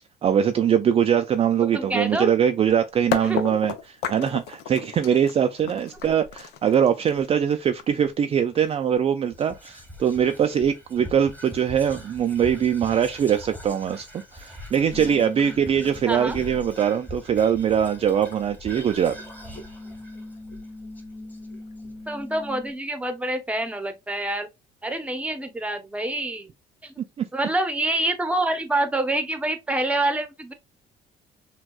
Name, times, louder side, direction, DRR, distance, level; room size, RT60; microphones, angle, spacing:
voice 1, 0.2-14.1 14.3-19.2 27.2-27.3, right 8 dB, 35° right, 0.4 m, -22 dB
voice 2, 1.7-2.3 3.2-3.4 16.1-16.4 22.1-24.5 24.8-26.5 26.8-26.9 27.3-30.5, right 1 dB, 10° right, 0.8 m, -26 dB
sound 1, 3.1-8.9, left 8 dB, 80° left, 0.6 m, -33 dB
Whispering, 9.3-21.8, equal, 10° left, 1.2 m, -43 dB
sound 2, 14.9-17.2 17.5-22.7, left 3 dB, 60° left, 1.5 m, -41 dB
6.0 x 2.3 x 2.3 m
cardioid pair, 110°, 17 cm